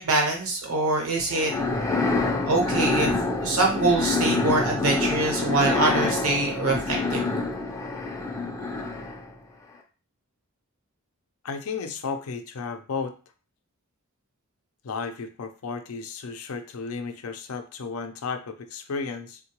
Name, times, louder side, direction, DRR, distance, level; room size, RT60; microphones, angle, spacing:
voice 1, 0.0-1.5 2.5-7.4, right 2 dB, 80° right, 1 dB, 0.9 m, -24 dB
sound 1, 1.3-9.3, left 3 dB, 15° left, 0.4 m, -26 dB
voice 2, 11.4-13.1 14.8-19.4, left 5 dB, 80° left, 7 dB, 0.5 m, -33 dB
3.7 x 2.1 x 2.9 m, 0.36 s
head